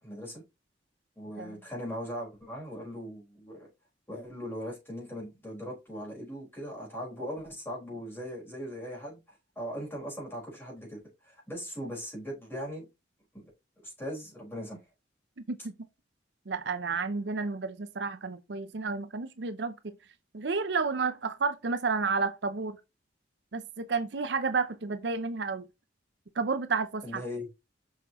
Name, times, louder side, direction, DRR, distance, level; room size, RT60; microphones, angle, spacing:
voice 1, 0.0-0.4 1.2-3.7 4.1-9.2 9.6-11.0 11.2-12.8 13.8-14.8 27.0-27.5, equal, 10° left, 4.5 m, -39 dB
voice 2, 15.4-15.7 16.5-19.9 20.3-22.8 23.5-25.7 26.4-27.2, right 4 dB, 65° right, 0.6 m, -31 dB
6.3 x 5.7 x 3.0 m
head